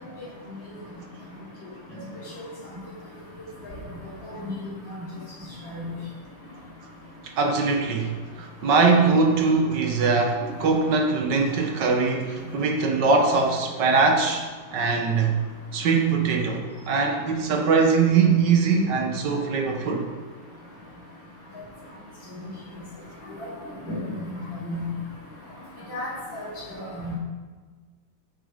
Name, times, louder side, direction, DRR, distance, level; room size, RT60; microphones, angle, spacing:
voice 1, 4.2-4.5 5.7-6.0 23.8-24.0 24.3-24.8 25.9-27.1, left 1 dB, 70° left, -14 dB, 4.2 m, -34 dB
voice 2, 7.2-15.4 15.7-20.0, right 4 dB, 65° right, 3 dB, 1.7 m, -22 dB
9.6 x 7.9 x 5.1 m, 1.4 s
omnidirectional pair, 2.1 m